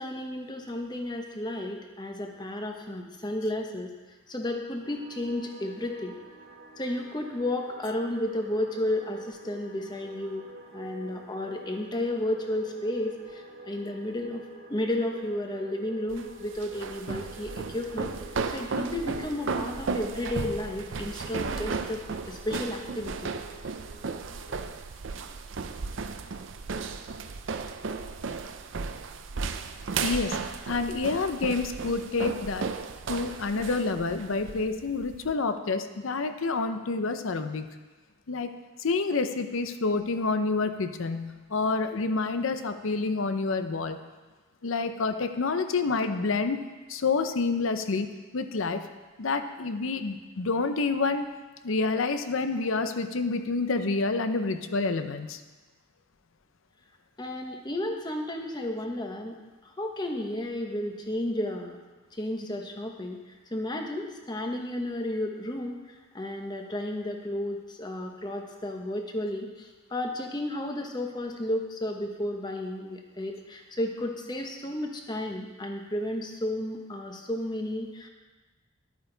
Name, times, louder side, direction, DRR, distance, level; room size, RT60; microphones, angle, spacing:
voice 1, 0.0-3.9 4.3-6.2 6.8-14.4 14.7-18.1 18.5-23.3 57.2-61.8 62.1-63.2 63.5-78.1, left 1 dB, 20° left, 3 dB, 0.9 m, -33 dB
sound 1, 4.8-24.6, right 2 dB, 90° right, 2.6 m, -48 dB
sound 2, 16.1-35.3, right 4 dB, 65° right, 0.5 m, -35 dB
voice 2, 30.0-30.4 30.7-32.7 33.1-37.7 38.3-38.5 38.8-44.0 44.6-46.6 46.9-48.9 49.2-51.3 51.6-55.4, left 3 dB, 75° left, 9 dB, 0.7 m, -28 dB
11.5 x 9.1 x 3.9 m, 1.2 s
head